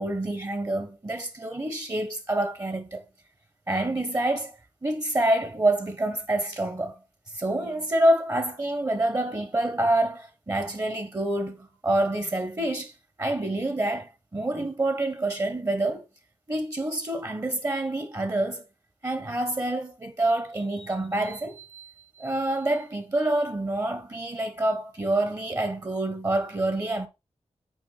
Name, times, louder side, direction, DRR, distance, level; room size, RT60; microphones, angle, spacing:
voice 1, 0.0-3.0 3.7-4.5 4.8-7.0 7.3-12.9 13.2-16.1 16.5-18.6 19.0-27.1, right 1 dB, 30° right, 1.0 m, -27 dB
6.1 x 4.3 x 3.9 m
wide cardioid pair, 75°, 11 cm